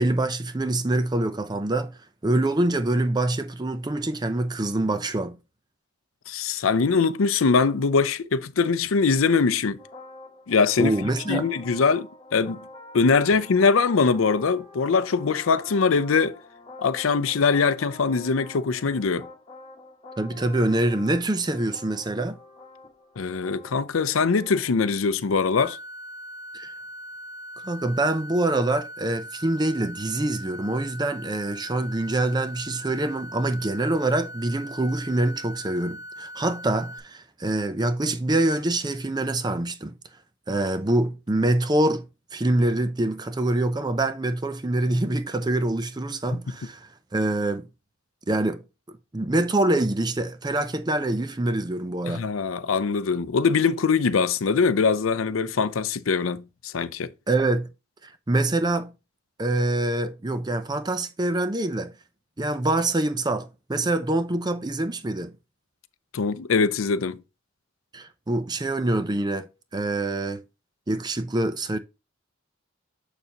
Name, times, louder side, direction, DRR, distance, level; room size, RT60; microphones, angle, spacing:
voice 1, 0.0-1.9 2.2-5.4 10.8-11.5 20.2-22.4 26.5-26.7 27.6-39.9 40.5-42.1 42.3-47.7 48.3-48.6 48.9-52.3 57.3-57.7 58.3-58.9 59.4-61.9 62.4-65.3 67.9-70.4 70.9-71.8, right 2 dB, 20° right, 0.5 m, -25 dB
voice 2, 6.3-9.8 10.5-10.9 11.3-12.6 12.9-16.4 16.8-19.3 23.2-25.8 52.1-57.1 66.1-67.2, left 5 dB, 90° left, 0.5 m, -22 dB
sound 1, 9.8-24.8, left 2 dB, 25° left, 1.3 m, -46 dB
sound 2, 25.6-37.0, equal, 65° right, 2.3 m, -40 dB
6.9 x 6.7 x 2.9 m
head